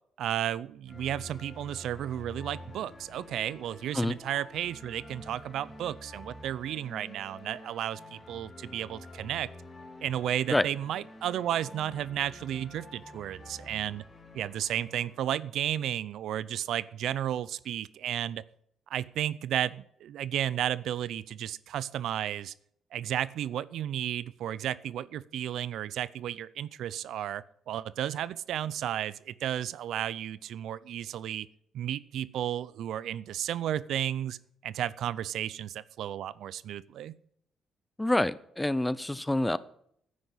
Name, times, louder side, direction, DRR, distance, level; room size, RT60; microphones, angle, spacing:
voice 1, 0.2-9.5 10.0-14.0 14.3-18.4 18.9-22.5 22.9-31.5 31.7-34.4 34.6-37.1, right 11 dB, 75° right, 19 dB, 0.5 m, -33 dB
sound 1, 0.9-15.4, left 1 dB, 30° left, 3.0 m, -48 dB
voice 2, 38.0-39.6, left 1 dB, 10° left, 18 dB, 0.7 m, -27 dB
10.5 x 9.6 x 8.2 m, 0.69 s
cardioid pair, 90°, 0 cm